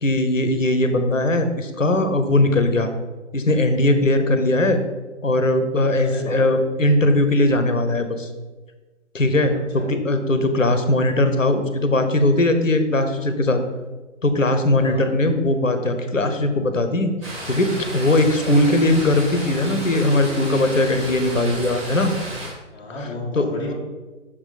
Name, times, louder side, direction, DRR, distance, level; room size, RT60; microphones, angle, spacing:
voice 1, 0.0-2.9 3.3-4.8 5.2-8.3 9.1-13.6 14.2-17.1 17.5-22.1 23.4-23.7, left 1 dB, 85° left, 8 dB, 0.8 m, -19 dB
voice 2, 6.0-6.5 9.5-9.9 14.8-15.1 22.7-23.7, left 1 dB, 10° left, -4 dB, 0.9 m, -33 dB
sound 1, 17.2-22.5, right 1 dB, 25° right, 1.6 m, -33 dB
6.1 x 4.8 x 3.9 m, 1.2 s
figure-of-eight pair, 130°, 38 cm